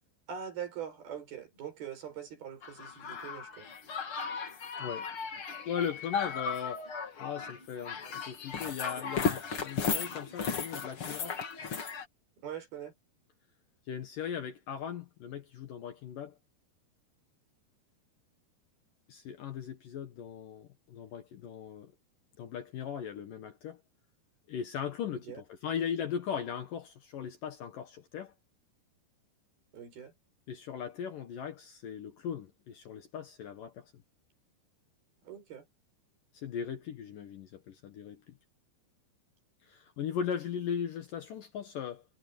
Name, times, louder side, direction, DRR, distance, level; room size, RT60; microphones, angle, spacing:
voice 1, 0.3-3.7 12.4-12.9 25.1-25.4 29.7-30.1 35.2-35.7, right 8 dB, 65° right, 7.0 m, -42 dB
sound 1, 2.6-12.1, left 5 dB, 40° left, 2.5 m, -36 dB
voice 2, 4.6-5.1 5.7-6.9 7.2-11.4 13.9-16.3 19.1-21.9 22.4-23.8 24.5-28.3 30.5-33.9 36.3-38.4 39.7-42.0, left 8 dB, 60° left, 2.8 m, -38 dB
omnidirectional pair, 4.8 m